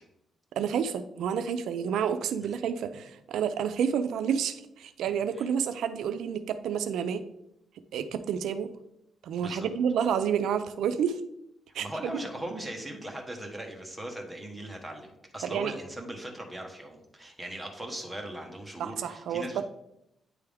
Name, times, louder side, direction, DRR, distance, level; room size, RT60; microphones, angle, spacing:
voice 1, 0.6-7.2 7.9-8.7 9.2-11.2 11.7-12.1 15.4-15.7 18.8-19.6, right 7 dB, 85° right, 10 dB, 0.3 m, -29 dB
voice 2, 11.8-19.6, right 1 dB, 5° right, 1 dB, 1.1 m, -39 dB
9.1 x 3.4 x 3.4 m, 0.83 s
cardioid pair, 125°, 0 cm